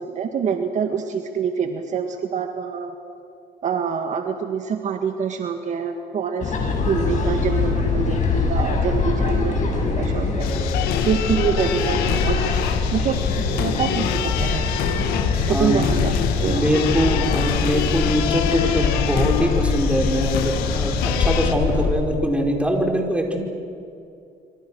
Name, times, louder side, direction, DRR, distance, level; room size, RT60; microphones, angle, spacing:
voice 1, 0.0-2.9 3.6-10.5 11.0-12.6 12.9-14.7 15.5-16.7, right 6 dB, 50° right, 5 dB, 1.8 m, -26 dB
sound 1, 6.4-21.9, left 4 dB, 50° left, 6.8 m, -23 dB
sound 2, 10.4-21.5, left 10 dB, 90° left, 1.9 m, -27 dB
voice 2, 15.4-15.8 16.4-23.4, equal, 10° right, 2 dB, 4.8 m, -23 dB
27.0 x 26.0 x 6.4 m, 2.6 s
cardioid pair, 95°, 16 cm